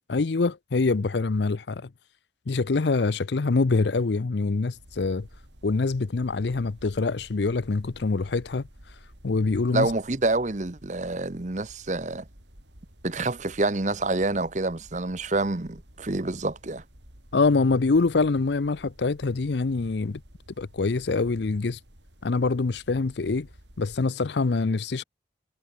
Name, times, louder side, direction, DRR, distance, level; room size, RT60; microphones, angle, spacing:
voice 1, 0.1-1.9 2.5-5.3 5.6-8.6 9.2-9.9 17.3-20.2 20.6-21.8 22.2-23.5 23.8-25.0, left 3 dB, 70° left, 0.6 m, -25 dB
sound 1, 4.7-24.0, equal, 80° right, 7.1 m, -52 dB
voice 2, 9.7-12.2 13.0-16.8, right 2 dB, 40° right, 1.0 m, -27 dB
head